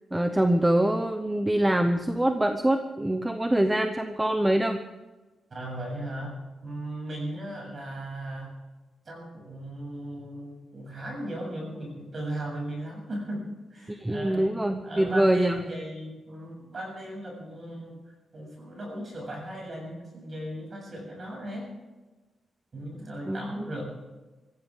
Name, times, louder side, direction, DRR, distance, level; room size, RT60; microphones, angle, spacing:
voice 1, 0.1-4.8 13.9-15.6 23.3-23.8, right 1 dB, 10° right, 6 dB, 0.9 m, -24 dB
voice 2, 5.5-6.3 6.6-8.5 9.1-13.4 13.7-14.6 14.8-18.0 18.3-21.7 22.7-23.8, right 1 dB, 35° right, 0 dB, 7.5 m, -37 dB
25.0 x 15.5 x 3.7 m, 1.2 s
wide cardioid pair, 165°, 0 cm